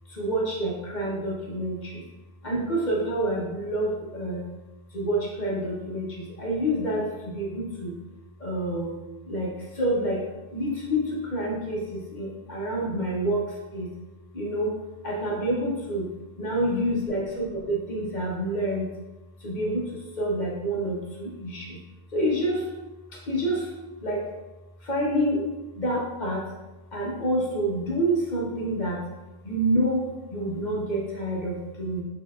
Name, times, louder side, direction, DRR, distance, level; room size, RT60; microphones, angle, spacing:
voice 1, 0.1-2.0 2.4-4.4 4.9-7.9 8.4-9.0 9.3-10.2 10.5-13.9 14.3-14.7 15.0-16.1 16.4-18.9 19.4-21.8 22.1-22.7 23.1-23.7 24.0-24.3 24.8-26.5 26.9-29.0 29.4-32.0, right 1 dB, 40° left, -4 dB, 0.9 m, -28 dB
6.2 x 2.9 x 2.4 m, 1.1 s
omnidirectional pair, 1.3 m